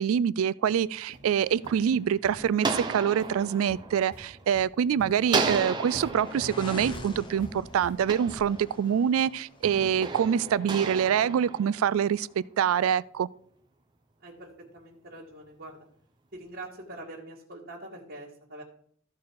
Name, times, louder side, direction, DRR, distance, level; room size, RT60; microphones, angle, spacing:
voice 1, 0.0-13.3, right 8 dB, 80° right, 0.3 m, -25 dB
sound 1, 0.6-0.7 1.1-1.3 1.6-1.7 2.2-2.3 2.7-2.8 3.2-3.3 3.7-4.2 4.5-4.6 5.0-8.6, equal, 70° left, 2.3 m, -47 dB
sound 2, 1.1-4.8 5.3-9.0 9.6-12.3, right 4 dB, 20° right, 0.9 m, -35 dB
sound 3, 4.9-9.8, equal, 20° left, 1.1 m, -44 dB
voice 2, 14.2-15.9 16.3-18.6, right 1 dB, 50° right, 1.9 m, -44 dB
14.0 x 4.8 x 4.6 m
head